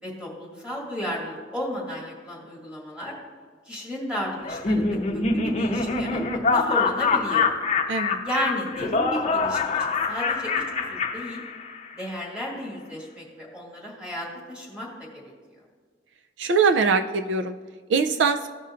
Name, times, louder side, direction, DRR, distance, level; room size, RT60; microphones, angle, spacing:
voice 1, 0.0-3.2 3.7-7.5 8.2-11.4 11.9-15.2, equal, 5° right, -5 dB, 2.0 m, -33 dB
Laughter, 4.4-11.9, left 4 dB, 35° left, 0.7 m, -25 dB
voice 2, 7.9-8.2 16.4-17.6 17.9-18.5, right 5 dB, 75° right, 7 dB, 0.4 m, -22 dB
16.0 x 5.6 x 2.5 m, 1.5 s
head